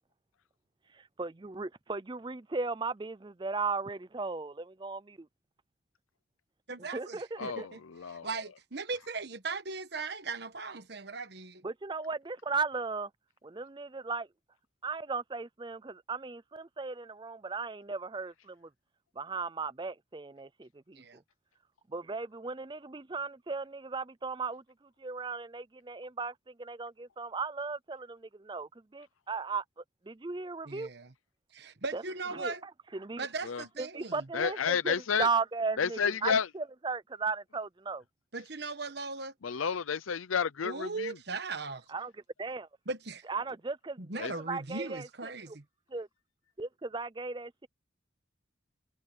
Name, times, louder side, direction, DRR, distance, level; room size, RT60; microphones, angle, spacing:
voice 1, 0.9-5.3 6.8-7.7 11.6-13.1 13.4-14.3 14.8-18.7 19.2-21.2 21.9-29.6 30.1-30.9 31.9-32.0 32.3-32.5 32.9-33.3 33.8-38.0 41.9-42.1 42.4-42.7 43.3-45.6 45.9-46.1 46.6-47.7, right 4 dB, 25° right, 0.5 m, -36 dB
voice 2, 6.7-7.8 8.1-11.6 20.9-21.2 30.6-31.1 31.5-32.6 33.2-34.2 38.3-39.3 40.6-41.8 42.9-43.2 44.0-45.6, right 3 dB, 55° right, 1.3 m, -38 dB
voice 3, 7.4-8.3 33.5-33.6 34.3-35.3 35.8-36.5 39.4-41.1 44.2-44.3, left 6 dB, 90° left, 0.6 m, -31 dB
head